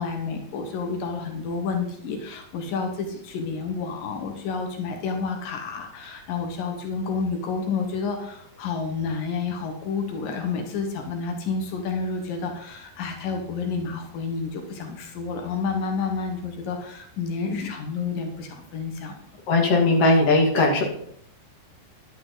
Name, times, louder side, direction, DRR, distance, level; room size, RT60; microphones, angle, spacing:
voice 1, 0.0-19.2, left 5 dB, 85° left, 4 dB, 3.1 m, -30 dB
voice 2, 19.5-20.8, left 2 dB, 50° left, -1 dB, 3.5 m, -18 dB
11.5 x 10.5 x 4.0 m, 0.69 s
omnidirectional pair, 3.8 m